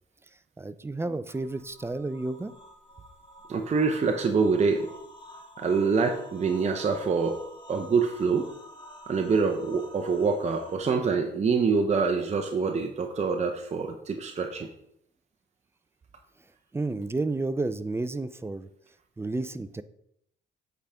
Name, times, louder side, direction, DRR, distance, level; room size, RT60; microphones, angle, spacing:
voice 1, 0.6-2.5 16.7-18.7 19.2-19.8, right 2 dB, 10° right, 14 dB, 0.4 m, -31 dB
sound 1, 1.3-10.8, equal, 25° left, 1.4 m, -49 dB
voice 2, 3.5-4.9 5.6-7.4 7.7-8.5 9.1-14.7, right 5 dB, 35° right, 3 dB, 0.7 m, -25 dB
8.1 x 5.0 x 3.5 m, 0.74 s
cardioid pair, 90°, 20 cm